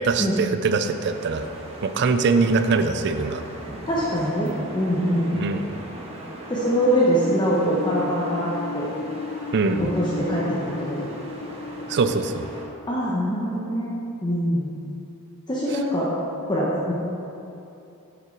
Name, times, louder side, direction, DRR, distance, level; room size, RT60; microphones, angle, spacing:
voice 1, 0.0-1.5 1.8-3.4 5.3-5.8 9.5-9.9 11.9-12.5, right 4 dB, 50° right, 9 dB, 0.4 m, -22 dB
sound 1, 0.6-12.6, right 1 dB, 25° right, 1.2 m, -40 dB
voice 2, 3.9-5.4 6.5-8.9 9.8-11.1 12.9-13.9 14.2-14.7 15.5-16.1 16.5-16.9, equal, 20° left, -7 dB, 1.0 m, -23 dB
sound 2, 6.8-13.7, left 4 dB, 70° left, 0.5 m, -35 dB
8.5 x 6.7 x 4.5 m, 2.8 s
head